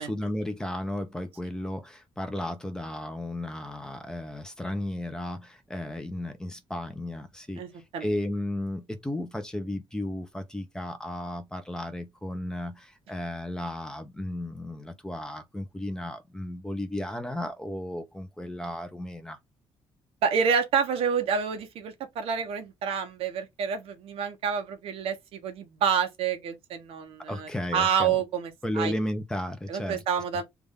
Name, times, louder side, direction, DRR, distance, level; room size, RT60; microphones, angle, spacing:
voice 1, 0.0-7.6 8.0-19.4 27.3-28.2 28.6-30.0, left 1 dB, 5° left, 0.8 m, -34 dB
voice 2, 7.6-8.0 20.2-28.9 29.7-30.4, right 7 dB, 85° right, 1.1 m, -28 dB
3.5 x 2.7 x 3.5 m
cardioid pair, 145°, 10 cm